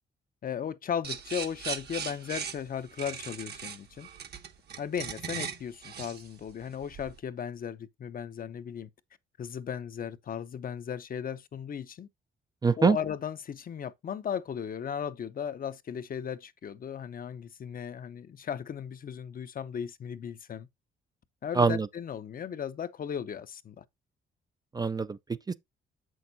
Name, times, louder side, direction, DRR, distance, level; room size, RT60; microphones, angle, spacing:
voice 1, 0.4-4.1 4.8-8.9 9.4-12.1 12.8-20.7 21.4-23.8, left 8 dB, 45° left, 0.7 m, -36 dB
sound 1, 1.0-7.2, right 7 dB, 55° right, 1.0 m, -39 dB
voice 2, 12.6-13.0 21.5-21.9 24.7-25.5, right 4 dB, 20° right, 0.4 m, -25 dB
7.6 x 6.3 x 2.7 m
cardioid pair, 90°, 20 cm